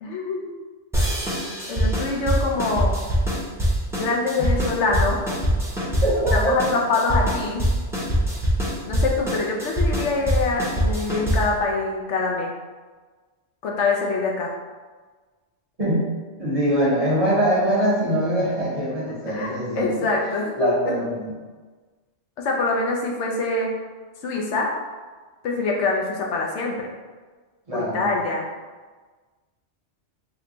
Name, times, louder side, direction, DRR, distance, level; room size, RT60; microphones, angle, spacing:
voice 1, 0.0-0.5 1.7-3.0 3.9-5.2 6.3-7.6 8.9-12.5 13.6-14.5 19.1-20.9 22.4-23.7 24.2-24.7 25.4-26.9 27.7-28.4, left 3 dB, 80° left, 0 dB, 0.9 m, -25 dB
sound 1, 0.9-11.6, equal, 5° right, 0.5 m, -23 dB
voice 2, 6.0-6.5 15.8-16.1 16.4-20.1 20.6-21.2 27.7-28.1, right 1 dB, 35° right, -7 dB, 0.7 m, -23 dB
3.0 x 2.2 x 3.8 m, 1.4 s
omnidirectional pair, 1.2 m